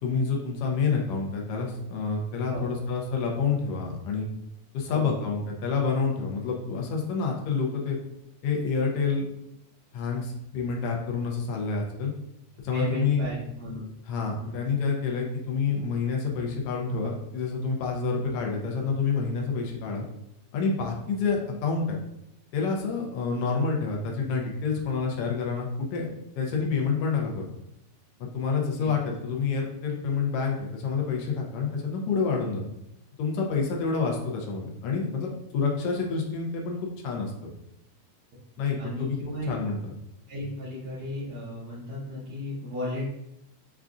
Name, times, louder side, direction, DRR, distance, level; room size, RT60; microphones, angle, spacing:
voice 1, 0.0-4.3 4.7-8.0 8.4-9.3 9.9-12.1 12.6-13.2 14.1-20.0 20.5-22.0 22.5-26.1 26.4-27.4 28.3-32.6 33.2-37.5 38.6-39.9, left 5 dB, 80° left, 0 dB, 1.3 m, -28 dB
voice 2, 4.9-5.2 12.7-13.9 14.4-14.6 28.8-28.9 38.8-39.5 40.3-43.1, left 1 dB, 70° right, -9 dB, 2.1 m, -35 dB
6.8 x 2.4 x 2.4 m, 0.82 s
omnidirectional pair, 3.4 m